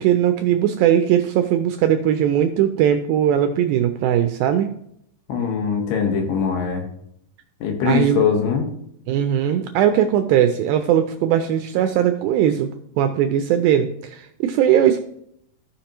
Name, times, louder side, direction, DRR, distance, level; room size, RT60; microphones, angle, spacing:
voice 1, 0.0-4.7 7.8-8.2 9.1-12.7 13.0-15.0, right 10 dB, 85° right, 8 dB, 2.1 m, -19 dB
voice 2, 5.3-6.8 7.6-8.7, left 6 dB, 90° left, 3 dB, 3.4 m, -21 dB
15.0 x 5.2 x 2.9 m, 0.72 s
omnidirectional pair, 4.5 m